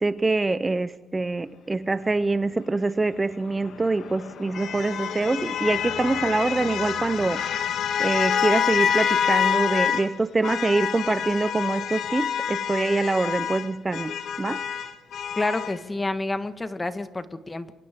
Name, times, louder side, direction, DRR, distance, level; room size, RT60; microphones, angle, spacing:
voice 1, 0.0-7.4 8.0-14.1 14.4-14.6, right 3 dB, 20° right, 13 dB, 0.7 m, -25 dB
sound 1, 3.5-10.1 10.4-15.8, left 8 dB, 70° left, 1.5 m, -27 dB
voice 2, 15.3-17.7, left 2 dB, 20° left, 10 dB, 1.6 m, -29 dB
29.0 x 24.0 x 3.7 m, 1.1 s
cardioid pair, 90°, 0 cm